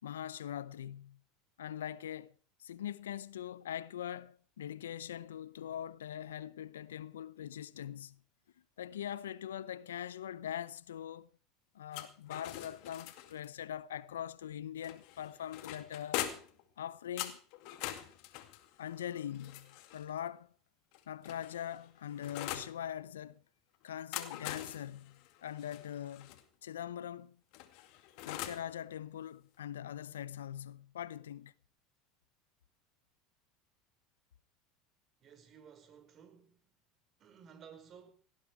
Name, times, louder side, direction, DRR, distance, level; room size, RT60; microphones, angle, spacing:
voice 1, 0.0-1.2 1.6-2.3 2.6-8.2 8.8-11.3 11.7-16.3 16.8-17.4 18.8-20.5 21.1-23.4 23.8-27.4 28.3-31.5, left 10 dB, 85° left, 0.6 m, -42 dB
sound 1, 11.9-13.5 14.8-16.6 17.2-20.1 20.9-22.7 23.9-26.4 27.5-28.7, left 13 dB, 65° left, 2.2 m, -43 dB
voice 2, 35.2-36.7 37.2-38.1, right 7 dB, 45° right, 5.1 m, -56 dB
18.0 x 14.0 x 4.7 m
hypercardioid pair, 85°, 0 cm